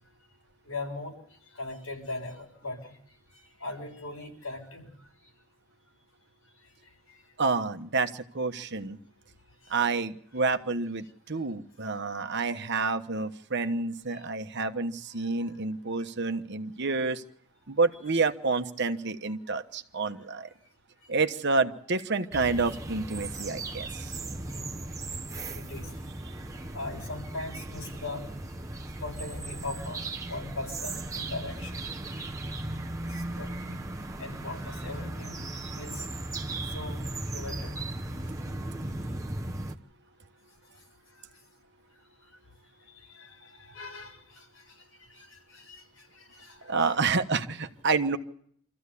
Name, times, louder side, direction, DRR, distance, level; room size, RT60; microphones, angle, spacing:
voice 1, 0.6-1.2 1.5-3.0 3.3-4.9 7.1-7.2 9.6-9.8 14.1-14.2 23.2-23.4 24.5-24.7 25.5-25.9 26.7-28.3 29.0-30.0 30.3-31.8 33.1-33.8 34.2-35.4 35.8-36.1 36.7-37.0 37.3-37.9 42.9-46.9, left 2 dB, 85° left, 1 dB, 6.9 m, -40 dB
voice 2, 7.4-9.0 9.7-17.2 17.7-20.5 21.1-24.2 26.3-26.4 46.6-48.2, right 4 dB, 55° right, 8 dB, 1.2 m, -29 dB
sound 1, 22.3-39.7, right 2 dB, 15° right, 1.0 m, -37 dB
26.5 x 14.5 x 8.4 m, 0.66 s
head